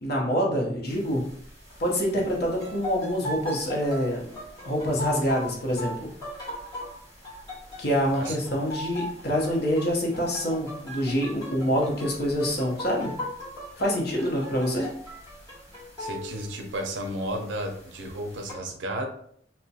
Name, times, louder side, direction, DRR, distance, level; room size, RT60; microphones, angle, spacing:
voice 1, 0.0-1.2 1.8-4.2 4.6-6.1 7.8-13.1 13.8-14.9, equal, 55° left, -2 dB, 0.7 m, -26 dB
sound 1, 0.9-18.5, left 1 dB, 20° left, 1.3 m, -39 dB
voice 2, 16.0-19.1, right 1 dB, 70° right, 4 dB, 0.5 m, -33 dB
2.3 x 2.1 x 2.7 m, 0.63 s
head